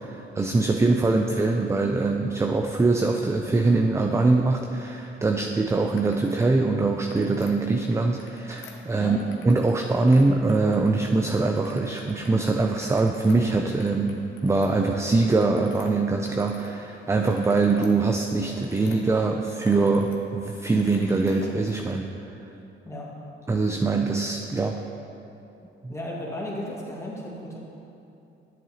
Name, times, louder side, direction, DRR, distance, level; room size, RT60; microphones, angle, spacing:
voice 1, 0.0-9.2 9.4-22.1 23.5-24.8 25.8-25.9, right 3 dB, 15° right, 3 dB, 0.4 m, -23 dB
sound 1, 5.9-6.5 6.9-7.6 8.0-9.8 10.0-11.2 11.6-12.3 12.6-16.7 17.1-19.0 19.4-20.2 20.5-21.6, left 5 dB, 85° left, 0.9 m, -49 dB
voice 2, 25.9-27.6, left 1 dB, 15° left, -4 dB, 1.9 m, -34 dB
11.0 x 7.6 x 2.8 m, 2.8 s
cardioid pair, 90°, 20 cm